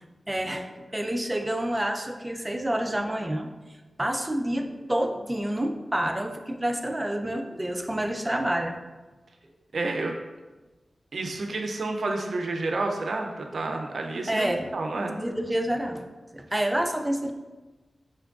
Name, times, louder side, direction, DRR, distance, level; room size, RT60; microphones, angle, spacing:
voice 1, 0.3-3.5 4.0-8.8 14.3-14.6 15.2-16.0 16.3-17.3, right 1 dB, 20° right, 6 dB, 0.4 m, -28 dB
voice 2, 9.7-10.2 11.1-15.2, right 2 dB, 80° right, 3 dB, 0.4 m, -30 dB
4.5 x 3.4 x 2.4 m, 1.2 s
cardioid pair, 55°, 0 cm